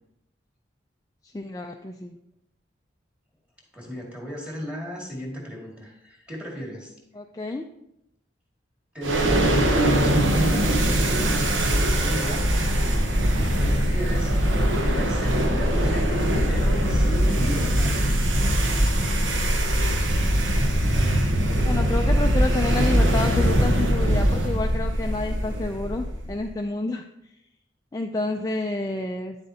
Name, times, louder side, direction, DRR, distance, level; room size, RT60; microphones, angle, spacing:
voice 1, 1.3-2.2 7.1-7.7 21.6-27.0 27.9-29.4, left 2 dB, 20° left, 3 dB, 0.3 m, -29 dB
voice 2, 3.7-6.9 8.9-10.7 11.0-12.4 13.6-14.4 14.8-18.0, equal, 5° right, -3 dB, 2.0 m, -35 dB
sound 1, 9.0-26.4, right 1 dB, 85° right, 1.1 m, -22 dB
9.8 x 7.5 x 2.8 m, 0.81 s
head